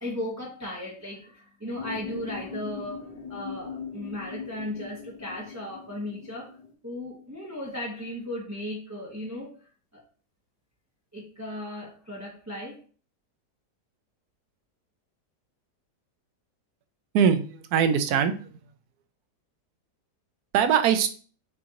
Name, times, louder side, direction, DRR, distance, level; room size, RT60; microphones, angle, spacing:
voice 1, 0.0-6.5 6.8-9.5 9.9-10.0 11.1-12.8, left 1 dB, 10° right, -5 dB, 0.8 m, -36 dB
sound 1, 1.8-6.7, left 6 dB, 90° left, 1.5 m, -40 dB
voice 2, 17.1-18.6 20.5-21.1, right 7 dB, 75° right, 9 dB, 1.0 m, -22 dB
7.3 x 2.5 x 2.9 m, 0.41 s
omnidirectional pair, 1.8 m